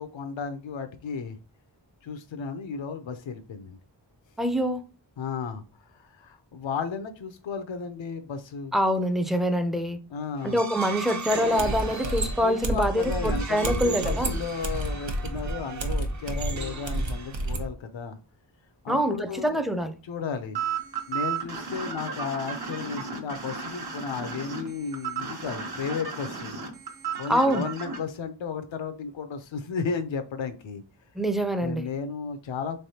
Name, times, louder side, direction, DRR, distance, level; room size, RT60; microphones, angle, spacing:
voice 1, 0.0-1.4 2.0-3.8 5.2-5.6 5.9-8.7 10.1-10.6 12.4-18.2 18.8-19.6 20.0-20.6 21.1-26.6 27.2-30.8 31.6-32.8, left 5 dB, 80° left, 0.6 m, -34 dB
voice 2, 4.4-4.8 8.7-10.0 10.4-14.3 18.9-19.9 27.3-27.6 31.2-31.9, equal, ahead, 0.4 m, -25 dB
sound 1, 10.4-17.7, right 4 dB, 40° right, 0.6 m, -38 dB
sound 2, 11.6-17.7, right 1 dB, 90° right, 0.8 m, -30 dB
sound 3, 20.5-28.0, right 6 dB, 55° right, 0.9 m, -34 dB
3.8 x 3.3 x 2.7 m
wide cardioid pair, 75°, 44 cm